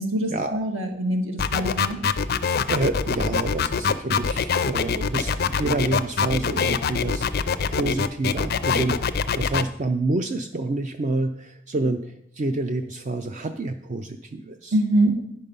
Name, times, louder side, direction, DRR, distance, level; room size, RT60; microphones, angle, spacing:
voice 1, 0.0-2.0 14.7-15.2, right 1 dB, 80° right, 3 dB, 1.6 m, -24 dB
sound 1, 1.4-9.6, left 6 dB, 50° left, 0.4 m, -23 dB
voice 2, 2.7-14.7, right 2 dB, 35° right, 7 dB, 0.4 m, -28 dB
10.0 x 5.5 x 5.3 m, 0.75 s
head